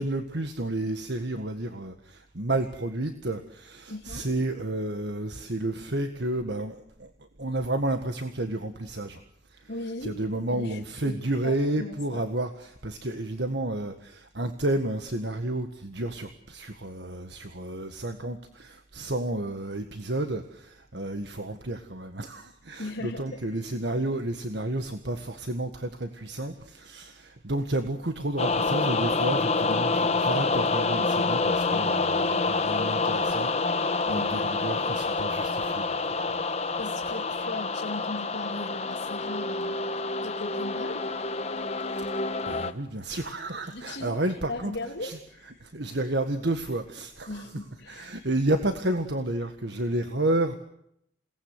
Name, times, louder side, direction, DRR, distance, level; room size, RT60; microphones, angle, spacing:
voice 1, 0.0-7.1 7.4-9.2 9.5-9.7 10.0-36.0 36.3-36.4 42.0-44.7 45.0-45.2 45.6-47.4 47.9-50.6, right 1 dB, 65° right, 7 dB, 1.7 m, -31 dB
voice 2, 3.9-4.3 9.7-10.2 10.5-12.2 22.8-23.4 34.1-34.8 36.8-39.8 40.2-41.2 43.6-44.2 44.5-45.6 47.3-48.2, left 2 dB, 75° left, -3 dB, 2.8 m, -38 dB
sound 1, 28.4-42.7, left 3 dB, 35° left, 1.3 m, -27 dB
28.5 x 19.0 x 8.1 m, 0.75 s
head